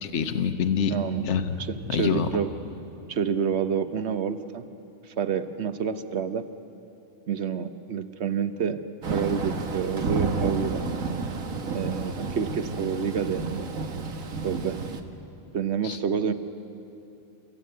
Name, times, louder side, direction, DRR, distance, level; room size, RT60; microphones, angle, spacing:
voice 1, 0.0-1.0 1.2-2.3 15.8-16.0, left 7 dB, 60° left, 8 dB, 1.3 m, -26 dB
voice 2, 0.9-1.3 1.7-2.5 3.1-4.6 5.1-6.4 7.3-10.8 11.7-13.7 14.4-14.8 15.5-16.3, right 7 dB, 55° right, 10 dB, 1.2 m, -28 dB
Thunder / Rain, 9.0-15.0, right 4 dB, 90° right, 1.7 m, -31 dB
29.0 x 14.5 x 9.3 m, 2.8 s
omnidirectional pair, 1.4 m